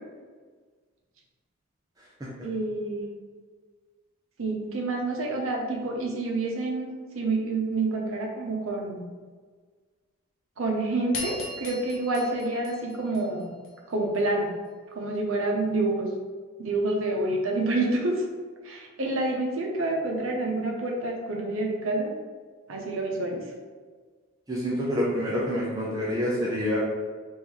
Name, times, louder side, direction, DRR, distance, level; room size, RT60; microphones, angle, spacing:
voice 1, 2.4-3.1 4.4-9.1 10.6-13.5 13.9-14.5 14.9-16.1 16.6-18.2 18.6-22.1 22.7-23.4, right 2 dB, 70° right, 0 dB, 0.7 m, -28 dB
sound 1, 11.1-13.7, left 3 dB, 70° left, 0.6 m, -38 dB
voice 2, 24.5-26.8, equal, 20° right, -6 dB, 0.4 m, -27 dB
3.0 x 2.6 x 3.6 m, 1.5 s
head